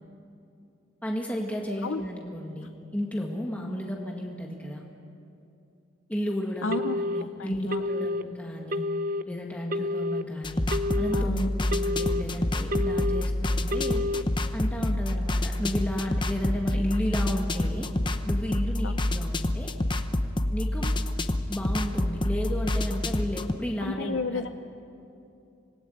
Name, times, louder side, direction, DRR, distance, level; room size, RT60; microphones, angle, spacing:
voice 1, 1.0-4.8 6.1-6.8 7.1-8.8 9.3-10.7 10.9-14.0 14.5-17.9 18.2-19.7 20.5-20.9 21.5-24.5, equal, 5° left, -1 dB, 1.9 m, -33 dB
voice 2, 6.6-7.8 11.1-11.5 18.8-18.9 23.8-24.5, left 3 dB, 75° left, 8 dB, 0.7 m, -32 dB
Telephone, 6.7-7.2 7.7-8.2 8.7-9.2 9.7-10.2 10.7-11.2 11.7-12.2 12.7-13.2 13.7-14.2, left 2 dB, 45° right, 0.7 m, -29 dB
sound 1, 10.4-23.5, left 1 dB, 25° left, 0.8 m, -28 dB
26.0 x 18.5 x 9.3 m, 2.7 s
head